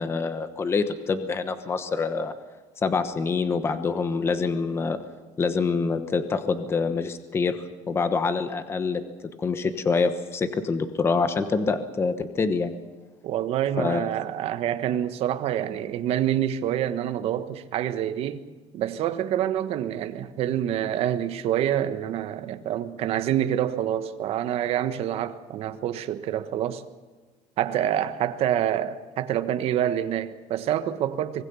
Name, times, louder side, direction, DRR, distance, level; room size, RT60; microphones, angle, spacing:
voice 1, 0.0-2.3 2.8-5.0 5.4-7.6 7.9-9.0 9.4-12.7 13.8-14.0, left 4 dB, 20° left, 1.1 m, -26 dB
voice 2, 13.2-18.4 18.7-26.8 27.6-31.4, right 11 dB, 45° right, 1.3 m, -27 dB
25.0 x 20.5 x 7.0 m
cardioid pair, 180°, 14 cm